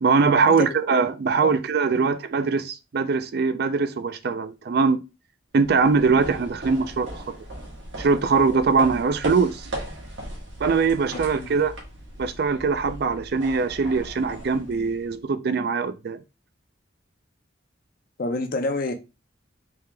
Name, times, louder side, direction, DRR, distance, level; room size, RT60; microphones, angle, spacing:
voice 1, 0.0-5.0 5.5-7.2 8.0-9.7 10.6-11.7 12.2-16.2, right 4 dB, 55° right, 0.4 m, -22 dB
sound 1, 5.6-15.2, right 1 dB, 85° right, 1.4 m, -37 dB
voice 2, 11.1-11.5 18.2-18.9, left 2 dB, 50° left, 0.6 m, -28 dB
3.6 x 2.8 x 3.3 m
head